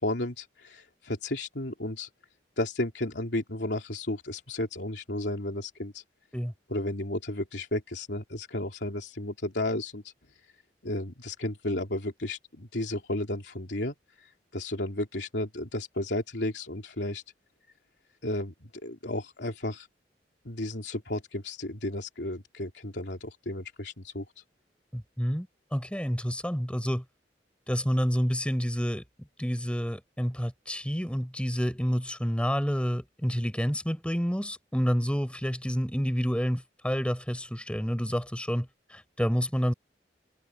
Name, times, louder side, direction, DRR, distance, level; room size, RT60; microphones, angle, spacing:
voice 1, 0.0-2.1 2.6-6.0 6.7-10.1 10.8-13.9 14.5-17.2 18.2-19.9 20.4-24.2, left 1 dB, 85° left, 2.9 m, -33 dB
voice 2, 24.9-25.5 25.7-27.0 27.7-29.0 29.4-39.7, equal, 5° left, 7.1 m, -29 dB
head